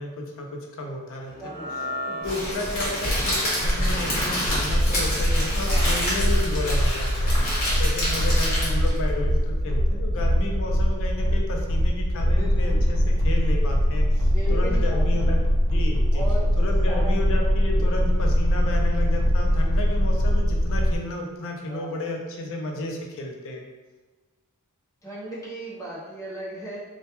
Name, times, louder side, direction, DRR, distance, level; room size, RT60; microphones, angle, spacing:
voice 1, 0.0-1.3 2.1-15.4 15.7-16.2 16.6-23.6, left 1 dB, 65° left, 2 dB, 0.4 m, -32 dB
sound 1, 1.3-7.7, left 1 dB, 40° right, 0.5 m, -39 dB
voice 2, 1.4-2.0 5.6-5.9 12.3-12.9 14.3-15.3 16.1-16.5 16.9-17.1 17.7-18.0 21.7-22.0 25.0-26.8, right 1 dB, 15° left, -7 dB, 0.6 m, -36 dB
Crackle, 2.2-9.0, equal, 40° left, 1.0 m, -27 dB
sound 2, 4.5-21.0, equal, 90° right, 0.4 m, -22 dB
2.2 x 2.1 x 2.8 m, 1.2 s
head